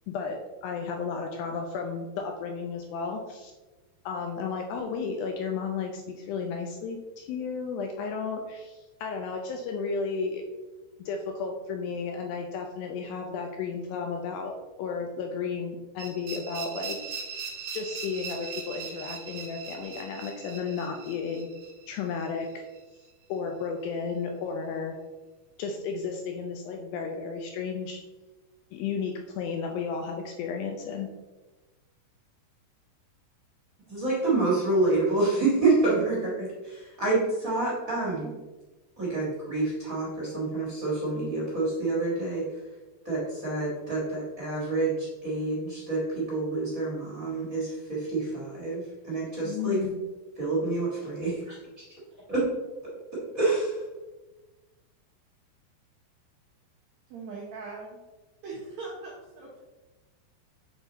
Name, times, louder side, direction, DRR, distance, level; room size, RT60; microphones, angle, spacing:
voice 1, 0.1-3.5 4.1-10.4 11.0-17.0 17.7-21.5 21.9-22.6 23.3-25.0 25.6-28.0 28.7-31.1 49.4-50.0, left 5 dB, 80° left, 3 dB, 2.1 m, -33 dB
sound 1, 16.0-22.8, right 6 dB, 70° right, 2.0 m, -40 dB
voice 2, 33.9-38.3 39.0-42.4 43.0-49.8 50.4-51.3 52.3-52.4 53.3-53.8, right 2 dB, 45° right, -7 dB, 1.1 m, -27 dB
voice 3, 57.1-58.0 58.4-59.6, right 3 dB, 90° right, -5 dB, 1.5 m, -40 dB
7.0 x 3.8 x 4.0 m, 1.2 s
omnidirectional pair, 4.7 m